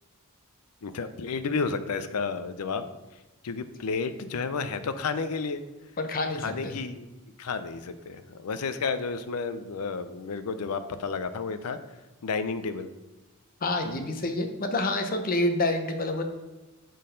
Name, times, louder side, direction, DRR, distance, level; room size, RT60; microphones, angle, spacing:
voice 1, 0.8-2.9 3.4-5.6 6.4-7.1 7.4-11.8 12.2-12.9, left 4 dB, 85° left, 11 dB, 0.5 m, -31 dB
voice 2, 6.0-6.8 13.6-16.2, left 2 dB, 40° left, 6 dB, 0.7 m, -28 dB
6.6 x 3.9 x 5.1 m, 1.1 s
head